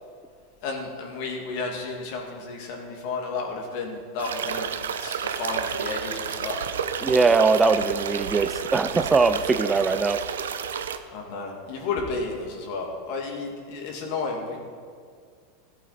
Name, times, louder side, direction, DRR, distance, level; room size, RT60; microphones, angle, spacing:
voice 1, 0.6-4.7 5.0-6.6 11.1-14.6, left 4 dB, 60° left, 1 dB, 2.1 m, -32 dB
sound 1, 4.2-11.0, right 7 dB, 85° right, 0.6 m, -31 dB
voice 2, 7.0-10.2, right 4 dB, 15° right, 11 dB, 0.5 m, -21 dB
14.0 x 7.9 x 4.3 m, 2.1 s
hypercardioid pair, 105°, 0 cm